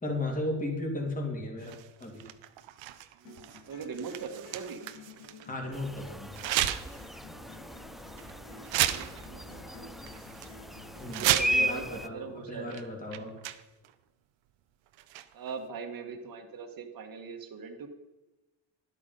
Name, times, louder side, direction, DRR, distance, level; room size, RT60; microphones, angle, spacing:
voice 1, 0.0-2.3 5.5-6.3 11.0-11.3 11.6-13.4, left 1 dB, 20° left, 0 dB, 2.7 m, -35 dB
sound 1, 1.6-5.5 6.3-7.0 7.4-7.6 8.2-8.3 8.6-9.7 10.1-10.5 11.0-11.8 12.7-12.8 13.1-13.9 14.9-15.5, right 13 dB, 85° right, 0.8 m, -33 dB
sound 2, 3.2-11.2, left 3 dB, 90° left, 1.6 m, -51 dB
voice 2, 3.7-4.8 8.3-9.6 11.2-12.8 15.3-17.9, right 5 dB, 50° right, 3 dB, 1.5 m, -40 dB
sound 3, 5.7-12.1, equal, ahead, 0.3 m, -36 dB
11.0 x 8.4 x 5.2 m, 1.0 s
cardioid pair, 100°, 44 cm